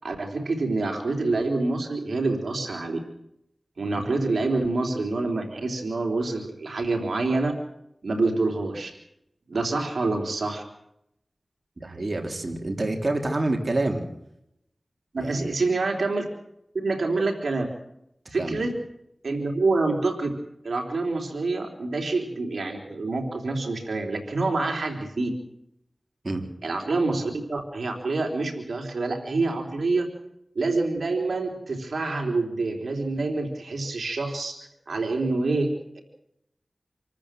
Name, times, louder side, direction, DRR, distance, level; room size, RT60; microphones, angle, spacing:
voice 1, 0.0-3.0 3.8-7.5 8.0-8.9 9.5-10.6 15.1-16.3 16.7-17.7 18.3-18.7 19.2-20.3 20.6-25.3 26.6-30.1 30.6-34.6 34.9-36.0, right 3 dB, 85° right, 3 dB, 3.5 m, -26 dB
voice 2, 11.8-14.1 15.2-15.5 18.4-18.6 26.2-26.4, right 2 dB, 55° right, 3 dB, 3.6 m, -27 dB
27.0 x 14.0 x 7.7 m, 0.78 s
wide cardioid pair, 50°, 0 cm